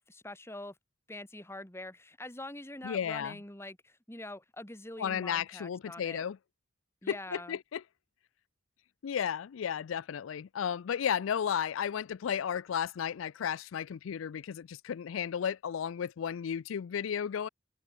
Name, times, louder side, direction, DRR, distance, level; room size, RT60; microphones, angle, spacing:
voice 1, 0.1-0.8 1.1-6.2 7.0-7.6, left 1 dB, 15° left, 2.7 m, -44 dB
voice 2, 2.8-3.3 5.0-6.4 7.1-7.8 9.0-17.5, left 8 dB, 90° left, 0.4 m, -33 dB
open air
head